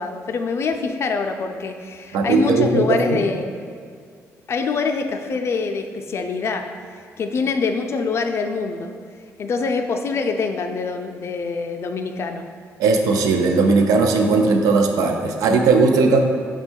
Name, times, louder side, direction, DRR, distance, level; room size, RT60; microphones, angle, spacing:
voice 1, 0.0-3.6 4.5-6.7 7.2-8.9 9.4-12.4, left 4 dB, 50° left, 6 dB, 0.4 m, -24 dB
voice 2, 2.1-3.2 12.8-16.2, right 4 dB, 85° right, 4 dB, 0.4 m, -17 dB
5.3 x 2.3 x 4.4 m, 2.1 s
cardioid pair, 100°, 6 cm